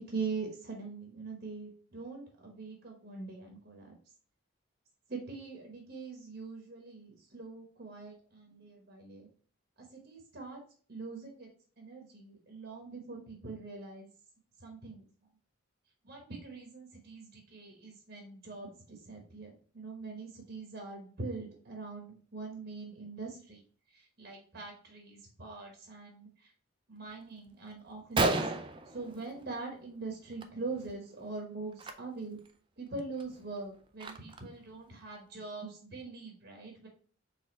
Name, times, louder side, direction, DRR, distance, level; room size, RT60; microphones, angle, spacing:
voice 1, 0.0-4.0 5.1-9.3 9.8-10.6 10.9-11.5 11.8-14.1 14.6-15.1 16.0-23.6 23.9-26.5 26.9-28.4 28.9-32.4 32.8-36.9, right 3 dB, 50° right, 1 dB, 1.0 m, -43 dB
Gunshot gunfire, 27.5-27.6 27.9-28.0 28.2-29.8 30.1-30.5 30.7-30.9 31.7-31.9 32.5-32.6 33.0-34.6, right 2 dB, 25° right, 0.3 m, -33 dB
4.2 x 3.6 x 3.2 m, 0.43 s
head